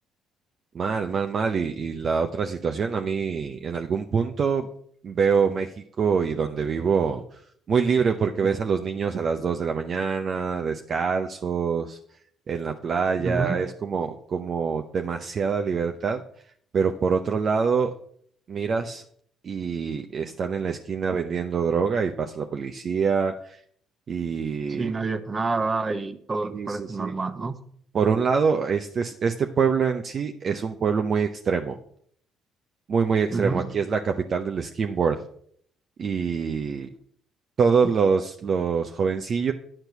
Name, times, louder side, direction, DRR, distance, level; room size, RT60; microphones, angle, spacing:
voice 1, 0.7-4.7 5.0-5.7 6.0-7.2 7.7-12.0 12.5-16.2 16.7-17.9 18.5-19.0 19.4-23.6 24.1-24.9 26.5-27.2 27.9-31.8 32.9-35.2 36.0-36.9 37.6-39.5, right 6 dB, 50° right, 5 dB, 0.7 m, -25 dB
voice 2, 13.2-13.6 24.7-27.6 33.3-33.7, right 3 dB, 30° right, 9 dB, 1.1 m, -28 dB
9.8 x 4.5 x 6.7 m, 0.63 s
supercardioid pair, 70°, 0 cm